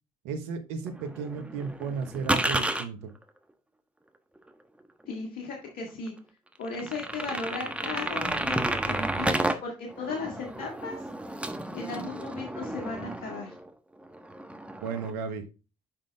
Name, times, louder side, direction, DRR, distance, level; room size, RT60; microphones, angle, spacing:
voice 1, 0.2-3.1 14.8-15.4, right 5 dB, 80° right, 7 dB, 1.1 m, -34 dB
sound 1, 0.9-2.8 4.5-4.6 5.0-5.1 5.7-5.8 6.1-6.2 6.6-9.6 9.9-13.7 14.0-15.1, right 1 dB, 5° right, 1.2 m, -32 dB
voice 2, 5.1-6.1 6.6-11.0 11.7-13.5, left 4 dB, 65° left, 1 dB, 1.8 m, -36 dB
7.4 x 5.2 x 3.4 m, 0.31 s
hypercardioid pair, 60°, 16 cm